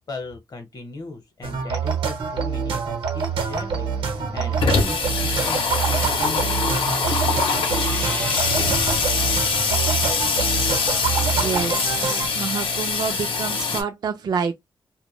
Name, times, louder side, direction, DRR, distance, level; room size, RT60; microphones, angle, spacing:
voice 1, 0.1-6.6 6.9-7.4 8.0-8.4, left 3 dB, 45° left, 0.8 m, -38 dB
sound 1, 1.4-12.3, right 6 dB, 80° right, 0.8 m, -26 dB
Water tap faucet / Sink (filling or washing), 3.2-3.3 3.6-3.7 3.9-13.8, left 4 dB, 80° left, 0.7 m, -23 dB
sound 2, 5.5-10.9, left 1 dB, 15° left, 0.5 m, -39 dB
voice 2, 11.3-14.5, right 6 dB, 50° right, 0.4 m, -28 dB
2.2 x 2.1 x 3.0 m
wide cardioid pair, 115°, 9 cm